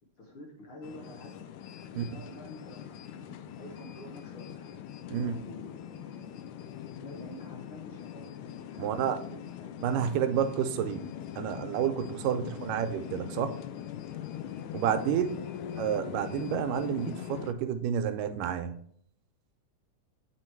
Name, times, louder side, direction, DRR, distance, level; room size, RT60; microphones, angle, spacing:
voice 1, 0.2-1.4 1.9-4.8 5.1-5.8 6.9-9.7 14.8-15.5, left 1 dB, 60° left, -1 dB, 1.4 m, -49 dB
sound 1, 0.8-17.5, left 9 dB, 80° left, 1.9 m, -42 dB
voice 2, 8.8-9.2 9.8-11.0 11.4-13.6 14.7-15.4 15.8-18.8, right 8 dB, 85° right, 9 dB, 2.3 m, -30 dB
7.7 x 4.6 x 4.4 m, 0.63 s
omnidirectional pair, 3.7 m